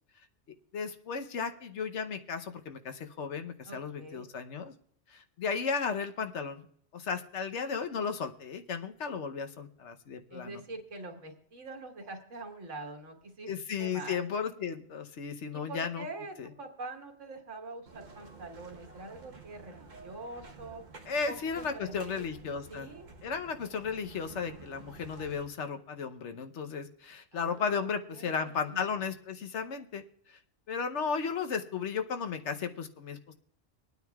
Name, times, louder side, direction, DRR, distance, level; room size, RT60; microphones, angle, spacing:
voice 1, 0.7-4.7 5.1-6.6 6.9-10.6 13.5-16.1 16.4-16.5 21.1-22.9 23.2-30.0 30.3-30.4 30.7-33.3, left 5 dB, 75° left, 7 dB, 1.1 m, -35 dB
voice 2, 3.6-4.3 10.3-13.5 13.8-14.2 15.5-20.8 21.2-22.3 22.7-23.1 27.3-28.9, right 2 dB, 85° right, 3 dB, 1.8 m, -44 dB
sound 1, 17.9-25.4, right 4 dB, 40° right, 1.1 m, -51 dB
24.5 x 9.3 x 2.3 m, 0.65 s
omnidirectional pair, 1.2 m